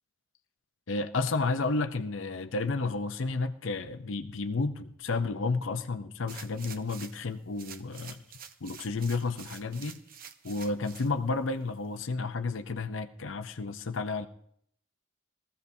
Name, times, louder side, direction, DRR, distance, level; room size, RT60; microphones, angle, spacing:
voice 1, 0.9-8.2 8.6-10.0 10.4-14.3, left 3 dB, 80° left, 8 dB, 0.7 m, -31 dB
sound 1, 6.3-7.3 7.6-11.1 11.6-11.7, right 8 dB, 45° right, 0.7 m, -48 dB
21.5 x 14.5 x 2.7 m, 0.68 s
head